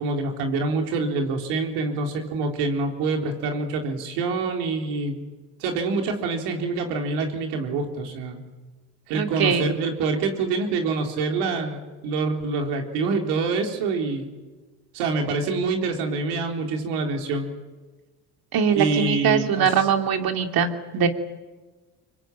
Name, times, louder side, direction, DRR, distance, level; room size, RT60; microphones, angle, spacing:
voice 1, 0.0-5.2 5.6-8.4 9.1-14.3 14.9-17.5 18.7-19.9, right 3 dB, 85° right, 3 dB, 4.0 m, -26 dB
voice 2, 9.1-9.7 18.5-21.1, right 7 dB, 60° right, 5 dB, 2.9 m, -22 dB
25.0 x 21.5 x 9.0 m, 1.3 s
supercardioid pair, 80°, 40 cm